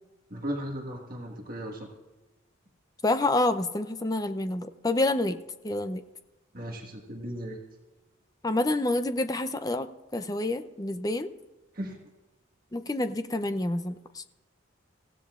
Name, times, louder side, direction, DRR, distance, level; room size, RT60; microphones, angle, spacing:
voice 1, 0.3-1.9 6.5-7.6 11.7-12.0, equal, 45° right, -1 dB, 1.6 m, -36 dB
voice 2, 3.0-5.4 5.6-6.0 8.4-11.3 12.7-14.2, left 2 dB, 20° left, 9 dB, 0.5 m, -28 dB
26.0 x 15.5 x 2.5 m, 1.2 s
head